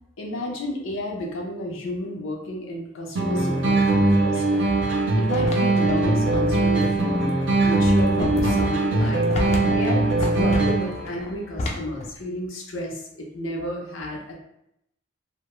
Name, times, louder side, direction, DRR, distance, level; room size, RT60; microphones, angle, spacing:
voice 1, 0.2-4.8 5.2-9.3 9.7-14.3, left 1 dB, 90° left, 0 dB, 0.6 m, -32 dB
sound 1, 3.2-11.1, right 2 dB, 65° right, 0.5 m, -21 dB
sound 2, 5.3-12.1, left 2 dB, 35° left, 0.3 m, -30 dB
2.2 x 2.1 x 2.9 m, 0.77 s
head